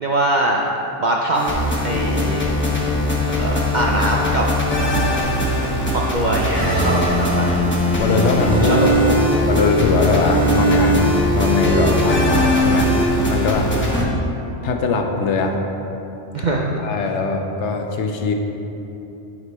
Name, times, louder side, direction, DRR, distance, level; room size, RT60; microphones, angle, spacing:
voice 1, 0.0-0.6 1.0-1.4 1.8-2.4 3.4-4.5 5.9-7.6 8.6-9.2 10.2-10.4 13.9-14.1 16.3-16.8, right 2 dB, 60° right, -2 dB, 0.5 m, -22 dB
sound 1, 1.3-14.0, equal, 10° left, 0.9 m, -19 dB
voice 2, 8.0-8.9 9.5-11.0 11.3-12.9 13.3-13.7 14.6-15.6 16.8-18.3, left 4 dB, 70° left, 3 dB, 0.9 m, -20 dB
9.6 x 5.1 x 3.3 m, 3.0 s
omnidirectional pair, 1.3 m